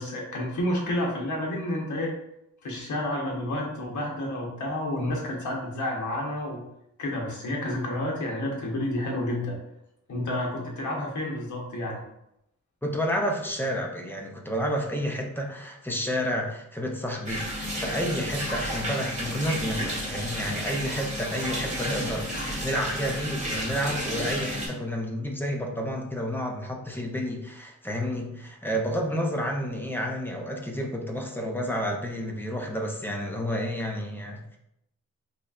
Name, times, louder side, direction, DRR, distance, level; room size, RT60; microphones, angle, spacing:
voice 1, 0.0-2.1 2.6-6.6 7.0-9.5 10.1-12.0, left 1 dB, 75° left, -1 dB, 0.9 m, -30 dB
voice 2, 12.8-34.6, equal, 5° left, 1 dB, 0.5 m, -30 dB
sound 1, 17.2-24.7, equal, 25° right, 1.2 m, -32 dB
4.0 x 3.2 x 2.4 m, 0.80 s
wide cardioid pair, 150°, 30 cm